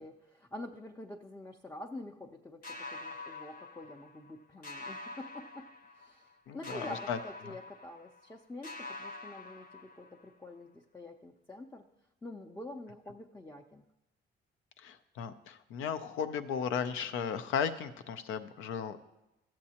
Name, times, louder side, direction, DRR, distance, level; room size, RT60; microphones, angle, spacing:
voice 1, 0.0-5.7 5.9-11.8 12.2-13.8, left 1 dB, 10° left, 2 dB, 0.5 m, -47 dB
sound 1, 2.6-4.3 4.6-6.3 6.6-8.4 8.6-10.3, left 2 dB, 45° left, 0.8 m, -46 dB
voice 2, 6.5-7.2 7.4-7.5 14.8-19.0, left 7 dB, 90° left, 10 dB, 0.6 m, -35 dB
13.5 x 7.4 x 2.9 m, 0.95 s
cardioid pair, 90°, 20 cm